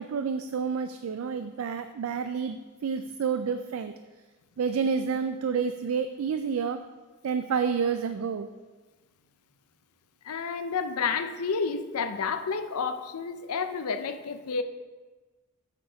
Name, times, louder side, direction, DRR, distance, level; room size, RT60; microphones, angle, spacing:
voice 1, 0.0-3.9 4.6-6.8 7.2-8.5, right 6 dB, 65° right, 9 dB, 0.3 m, -29 dB
voice 2, 10.2-14.6, left 5 dB, 80° left, 10 dB, 0.6 m, -30 dB
8.3 x 4.8 x 5.0 m, 1.3 s
head